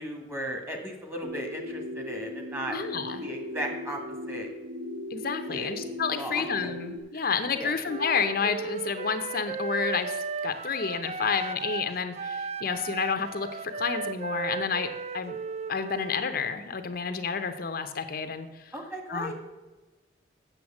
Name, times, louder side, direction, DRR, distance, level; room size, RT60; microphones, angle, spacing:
voice 1, 0.0-2.8 3.2-4.0 4.3-4.5 5.5-5.7 6.1-6.5 7.1-7.3 7.6-7.7 18.7-19.3, equal, 15° right, 3 dB, 1.9 m, -36 dB
sound 1, 1.2-7.0, left 1 dB, 55° right, 1.5 m, -38 dB
voice 2, 2.7-3.2 5.1-15.4 15.7-18.7 19.1-19.3, left 5 dB, 55° left, 8 dB, 0.8 m, -30 dB
Wind instrument woodwind instrument, 7.8-11.9 12.1-16.3, right 5 dB, 40° right, 0.4 m, -36 dB
8.0 x 6.8 x 7.3 m, 1.2 s
head